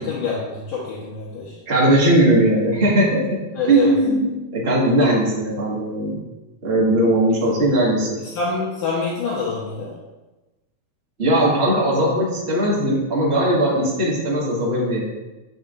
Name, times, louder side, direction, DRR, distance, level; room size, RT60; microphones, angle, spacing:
voice 1, 0.0-1.5 3.6-3.9 8.2-9.9, left 4 dB, 70° left, -8 dB, 2.6 m, -26 dB
voice 2, 1.7-3.4 3.7-6.2 6.6-8.2 11.2-15.0, right 1 dB, 55° right, -6 dB, 0.7 m, -19 dB
7.7 x 6.4 x 2.4 m, 1.1 s
omnidirectional pair, 3.9 m